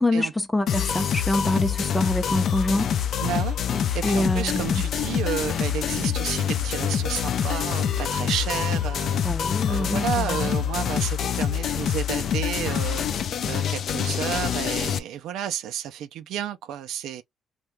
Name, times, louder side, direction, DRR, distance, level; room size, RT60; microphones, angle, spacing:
voice 1, 0.0-2.9 3.7-4.8 9.2-10.5, left 1 dB, 10° left, 0.5 m, -25 dB
sound 1, 0.7-15.0, left 8 dB, 65° left, 0.4 m, -26 dB
voice 2, 3.2-3.6 3.9-9.2 9.7-13.1 13.5-17.2, right 10 dB, 85° right, 0.4 m, -31 dB
2.7 x 2.2 x 3.2 m
cardioid pair, 90°, 0 cm